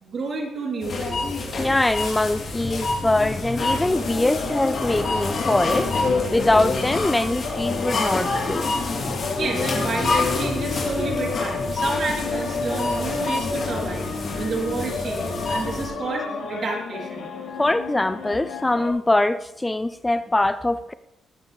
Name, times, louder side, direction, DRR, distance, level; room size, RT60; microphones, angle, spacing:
voice 1, 0.0-1.4 9.4-14.1 14.4-17.3, right 3 dB, 55° right, -1 dB, 3.8 m, -30 dB
sound 1, 0.8-15.9, left 3 dB, 50° left, 3.8 m, -27 dB
voice 2, 1.6-5.9 6.3-8.7 17.6-20.9, left 2 dB, 15° left, 13 dB, 0.4 m, -23 dB
sound 2, 3.9-18.9, left 4 dB, 80° left, 4.9 m, -32 dB
18.5 x 8.2 x 3.6 m, 0.84 s
cardioid pair, 90°, 0 cm